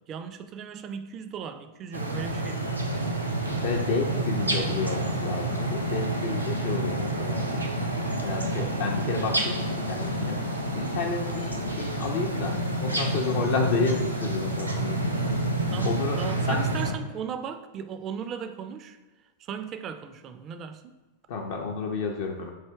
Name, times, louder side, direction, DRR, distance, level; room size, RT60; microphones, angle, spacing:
voice 1, 0.0-2.7 15.7-20.9, right 7 dB, 30° right, 9 dB, 0.3 m, -37 dB
sound 1, 1.9-16.9, right 1 dB, 85° right, 0.5 m, -29 dB
sound 2, 2.1-16.5, left 1 dB, 85° left, 0.8 m, -49 dB
voice 2, 3.6-7.6 8.2-10.4 10.7-15.0 15.8-16.2 16.5-16.6 21.3-22.5, left 4 dB, 55° left, 1 dB, 0.4 m, -30 dB
3.2 x 2.7 x 4.5 m, 1.3 s
figure-of-eight pair, 90°, 0 cm